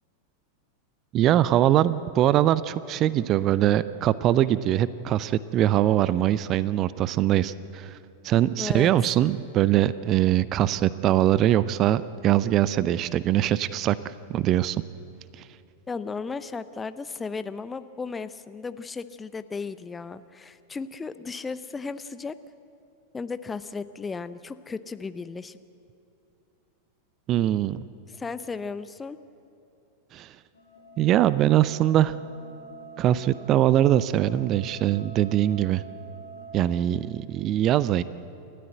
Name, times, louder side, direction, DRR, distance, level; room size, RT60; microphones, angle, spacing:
voice 1, 1.1-8.0 8.2-14.8 15.3-15.5 27.3-27.9 30.1-30.4 31.0-32.2 33.0-35.8 36.5-38.0, right 12 dB, 35° right, 17 dB, 0.6 m, -22 dB
voice 2, 8.6-8.9 15.9-22.4 23.1-25.6 28.1-29.2, left 4 dB, 15° left, 13 dB, 0.7 m, -35 dB
sound 1, 30.5-36.5, right 4 dB, 80° left, 6.3 m, -46 dB
29.5 x 13.5 x 8.0 m, 2.9 s
figure-of-eight pair, 90°, 0 cm